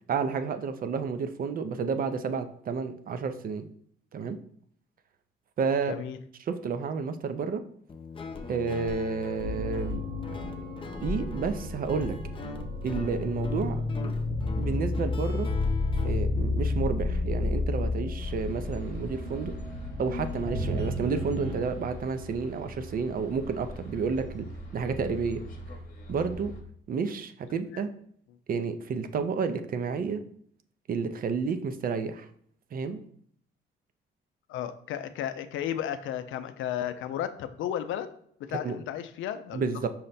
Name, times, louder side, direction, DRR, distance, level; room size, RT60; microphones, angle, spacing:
voice 1, 0.1-3.7 4.1-4.4 5.6-6.0 6.4-7.6 8.5-10.0 11.0-12.2 12.8-14.3 14.6-15.5 16.0-19.5 20.0-24.5 24.7-25.4 26.1-26.5 26.9-27.9 28.5-30.2 30.9-32.3 32.7-33.0 38.5-38.8 39.5-39.9, right 5 dB, 45° right, 9 dB, 0.4 m, -31 dB
voice 2, 5.9-6.2 34.5-38.1 38.4-39.7, left 10 dB, 80° left, 10 dB, 0.4 m, -33 dB
Guitar, 7.9-16.2, left 4 dB, 25° left, 0.5 m, -41 dB
sound 1, 9.4-21.7, left 2 dB, 70° right, 1.4 m, -31 dB
sound 2, 18.2-26.6, left 2 dB, 45° left, 0.9 m, -41 dB
5.6 x 2.1 x 3.9 m, 0.63 s
cardioid pair, 90°, 20 cm